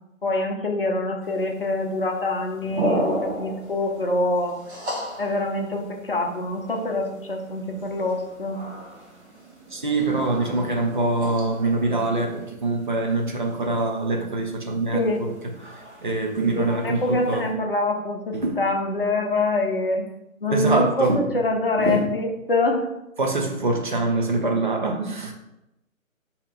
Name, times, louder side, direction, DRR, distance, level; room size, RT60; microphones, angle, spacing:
voice 1, 0.2-4.5 5.2-8.7 14.9-15.2 16.7-20.1 20.4-22.9, left 2 dB, 45° left, 3 dB, 0.5 m, -25 dB
sound 1, 1.2-17.5, equal, 50° right, 1.1 m, -36 dB
voice 2, 9.7-15.4 16.0-17.5 18.3-18.6 20.5-21.3 21.8-22.1 23.2-25.3, right 2 dB, 35° right, 2 dB, 0.5 m, -24 dB
4.1 x 2.8 x 3.9 m, 0.90 s
figure-of-eight pair, 150°, 42 cm